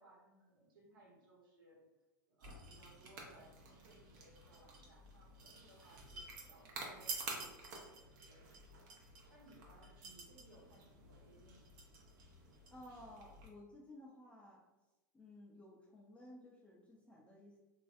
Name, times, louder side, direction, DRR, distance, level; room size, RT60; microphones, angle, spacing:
voice 1, 0.0-1.8 2.3-9.0 9.3-11.8, right 2 dB, 85° right, -4 dB, 1.1 m, -64 dB
sound 1, 2.4-13.5, right 3 dB, 65° right, 0.8 m, -50 dB
voice 2, 12.7-14.6 15.1-17.6, left 1 dB, 10° left, -3 dB, 0.4 m, -56 dB
3.1 x 2.5 x 2.5 m, 1.1 s
hypercardioid pair, 105°, 11 cm